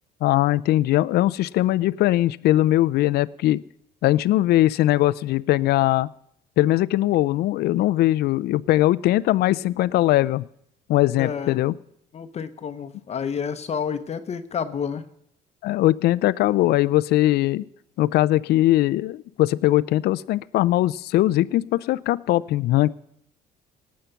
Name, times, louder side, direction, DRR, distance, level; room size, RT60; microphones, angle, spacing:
voice 1, 0.2-3.6 4.0-6.1 6.6-10.5 10.9-11.7 15.6-17.6 18.0-22.9, left 15 dB, 70° left, 18 dB, 0.5 m, -20 dB
voice 2, 11.2-11.6 12.1-15.0, left 7 dB, 40° left, 10 dB, 0.9 m, -29 dB
18.5 x 7.5 x 5.8 m, 0.74 s
cardioid pair, 110°, 17 cm